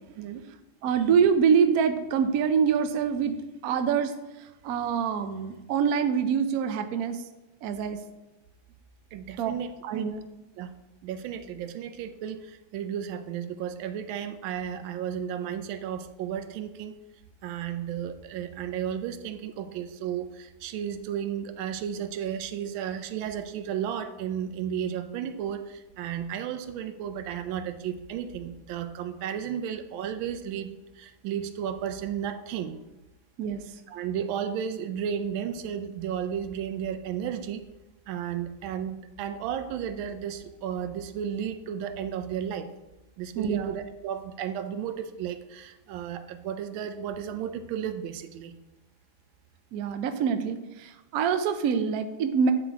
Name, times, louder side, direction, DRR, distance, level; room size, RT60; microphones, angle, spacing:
voice 1, 0.2-0.5 9.1-9.7 10.6-10.7 11.0-17.0 17.4-32.8 33.9-37.6 38.1-42.7 43.2-48.5, right 9 dB, 85° right, 9 dB, 1.4 m, -33 dB
voice 2, 0.8-3.4 3.6-4.1 4.6-7.2 7.6-8.0 9.4-9.5 9.8-10.2 33.4-33.6 43.4-43.7 49.7-52.5, right 7 dB, 70° right, 8 dB, 0.9 m, -25 dB
9.0 x 3.9 x 4.6 m, 1.0 s
omnidirectional pair, 2.1 m